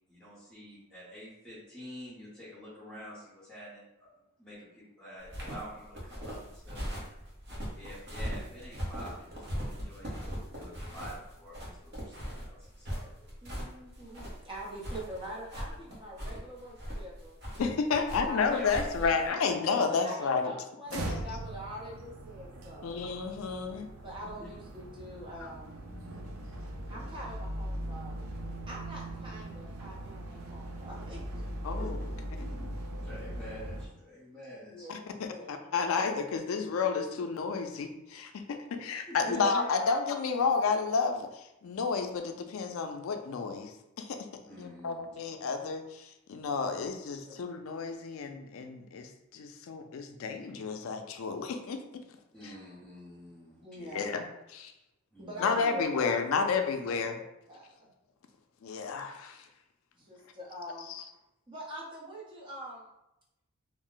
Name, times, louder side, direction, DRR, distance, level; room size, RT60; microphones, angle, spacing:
voice 1, 0.1-4.1 4.4-6.8 7.8-13.3 18.5-18.7 24.4-24.5 31.8-32.7 33.0-34.9 39.1-39.2 44.4-45.2 52.3-54.0 55.1-55.5, equal, 5° left, -12 dB, 0.9 m, -48 dB
sound 1, 5.2-19.3, equal, 50° right, 0.9 m, -39 dB
voice 2, 13.4-17.4 18.0-19.5 19.8-22.9 24.0-25.7 26.9-28.3 28.7-31.2 34.6-35.6 39.2-39.9 47.3-47.5 53.6-54.1 55.2-57.9 60.0-60.9 61.5-62.9, equal, 20° right, -5 dB, 0.7 m, -44 dB
voice 3, 17.6-20.5 22.8-23.9 31.6-32.0 34.9-44.3 44.6-51.8 53.9-54.3 54.5-54.7 55.4-57.1 58.6-59.4 60.9-61.0, left 5 dB, 70° left, 6 dB, 0.3 m, -31 dB
sound 2, 20.9-33.9, right 1 dB, 75° right, 0.4 m, -40 dB
2.5 x 2.0 x 3.7 m, 0.88 s
head